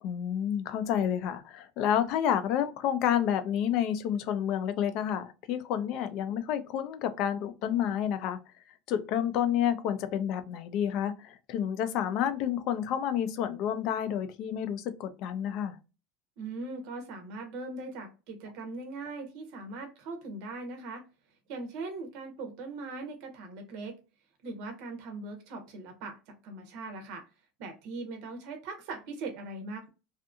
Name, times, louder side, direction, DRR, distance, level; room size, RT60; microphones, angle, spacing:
voice 1, 0.0-8.4 8.9-15.8, left 9 dB, 50° left, 0.4 m, -29 dB
voice 2, 16.4-21.0 21.5-23.9 24.4-26.2 26.4-27.2 27.6-29.9, right 3 dB, 60° right, 0.7 m, -40 dB
2.6 x 2.5 x 2.4 m
supercardioid pair, 155°, 0 cm